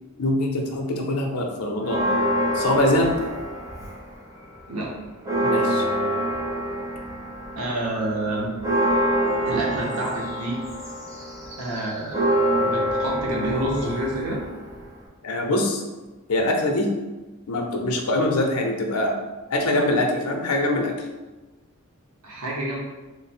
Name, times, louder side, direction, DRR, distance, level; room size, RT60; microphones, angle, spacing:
voice 1, 0.2-2.1 2.5-3.1 5.4-5.9 15.2-15.8 16.3-16.9 17.5-19.2 19.5-20.9, left 1 dB, 80° left, 2 dB, 0.6 m, -23 dB
Church bell, 1.8-4.2 4.6-4.7 5.0-15.1, right 1 dB, 15° right, 0.5 m, -26 dB
voice 2, 4.7-5.0 7.5-8.5 9.4-10.6 11.6-12.2 12.6-14.4 22.2-22.8, right 1 dB, 80° right, -3 dB, 0.8 m, -28 dB
3.2 x 2.1 x 4.2 m, 1.2 s
head